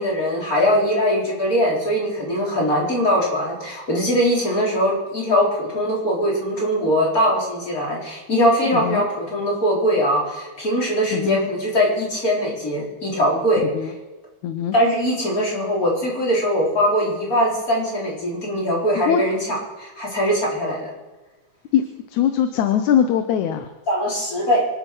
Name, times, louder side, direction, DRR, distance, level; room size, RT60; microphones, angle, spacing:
voice 1, 0.0-13.6 14.7-20.9 23.9-24.6, equal, 30° left, -4 dB, 4.7 m, -21 dB
voice 2, 8.7-9.0 11.1-11.4 13.7-13.9 14.4-14.7 19.0-19.2 21.7-21.8 22.1-23.7, left 9 dB, 85° left, 8 dB, 2.3 m, -21 dB
25.0 x 9.1 x 6.2 m, 1.2 s
omnidirectional pair, 3.3 m